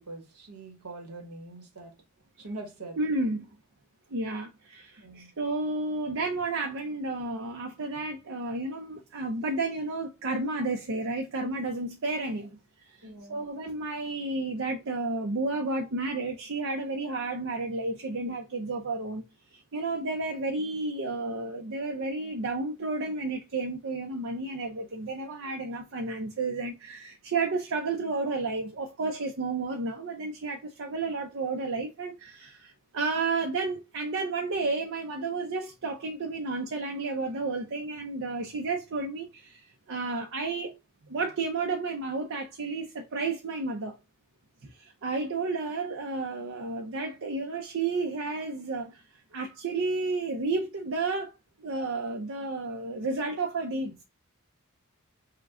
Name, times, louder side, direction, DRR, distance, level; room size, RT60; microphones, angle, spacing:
voice 1, 0.0-1.9 2.4-3.0 5.0-5.3 13.0-13.5, right 2 dB, 85° right, 1.2 m, -43 dB
voice 2, 3.0-3.5 4.1-12.6 12.8-19.2 19.5-40.7 41.1-44.0 44.6-49.0 49.3-54.0, right 3 dB, 60° right, 0.6 m, -32 dB
4.8 x 2.2 x 3.7 m
head